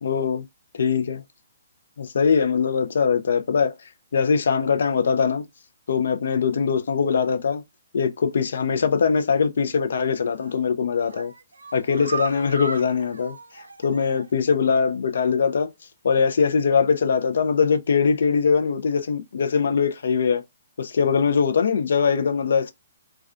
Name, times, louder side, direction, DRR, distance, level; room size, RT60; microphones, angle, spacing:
voice 1, 0.0-0.4 0.8-1.2 2.0-3.7 4.1-5.4 5.9-7.6 7.9-11.3 11.7-13.4 13.8-15.7 16.0-20.4 20.8-22.7, left 6 dB, 70° left, 0.4 m, -22 dB
sound 1, 10.2-10.6 11.0-14.4 14.7-14.8 15.2-15.3, right 4 dB, 90° right, 0.5 m, -36 dB
2.3 x 2.3 x 2.4 m
hypercardioid pair, 135°, 0 cm